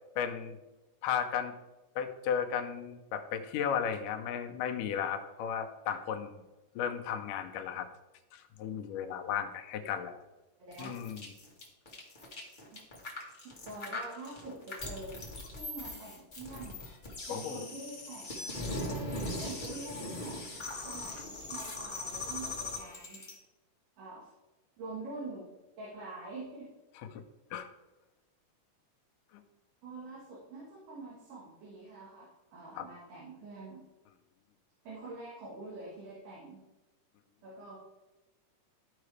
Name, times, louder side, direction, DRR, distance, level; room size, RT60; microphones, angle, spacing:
voice 1, 0.2-0.6 1.0-1.5 2.0-6.4 6.8-7.9 8.3-10.2 10.8-11.3 17.3-17.7 27.1-27.2 27.5-27.7 32.8-32.9, left 8 dB, 85° left, 6 dB, 2.2 m, -34 dB
voice 2, 10.6-11.0 13.4-16.8 17.3-23.2 24.0-24.3 24.8-25.5 25.8-26.7 29.8-33.8 34.8-36.6 37.4-37.8, right 2 dB, 75° right, -6 dB, 3.0 m, -46 dB
sound 1, 10.7-23.3, left 2 dB, 55° left, 0.5 m, -40 dB
13.5 x 4.8 x 3.2 m, 1.1 s
omnidirectional pair, 3.7 m